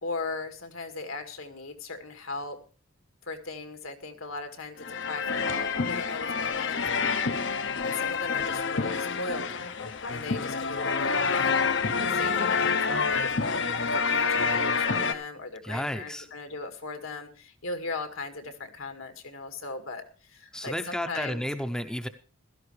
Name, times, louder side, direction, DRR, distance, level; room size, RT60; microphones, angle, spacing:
voice 1, 0.0-2.6 3.3-7.4 7.8-9.5 10.1-11.6 12.0-21.4, left 3 dB, 80° left, 6 dB, 2.1 m, -38 dB
sound 1, 4.8-15.1, left 5 dB, 60° left, 0.8 m, -27 dB
voice 2, 15.6-16.3 20.5-22.1, equal, 5° left, 8 dB, 0.7 m, -32 dB
16.0 x 13.0 x 3.3 m, 0.36 s
head